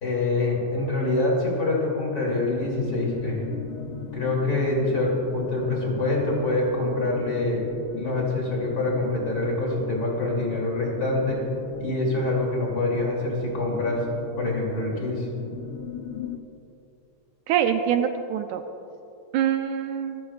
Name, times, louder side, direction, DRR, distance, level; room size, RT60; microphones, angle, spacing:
voice 1, 0.0-3.4 4.1-7.7 7.9-11.4 11.7-14.0 14.4-15.3, left 2 dB, 30° left, -3 dB, 3.2 m, -25 dB
sound 1, 2.6-16.4, left 6 dB, 80° left, 2.1 m, -38 dB
voice 2, 17.5-18.6 19.3-20.2, right 9 dB, 85° right, 6 dB, 2.0 m, -24 dB
25.0 x 13.0 x 2.4 m, 2.8 s
omnidirectional pair, 3.4 m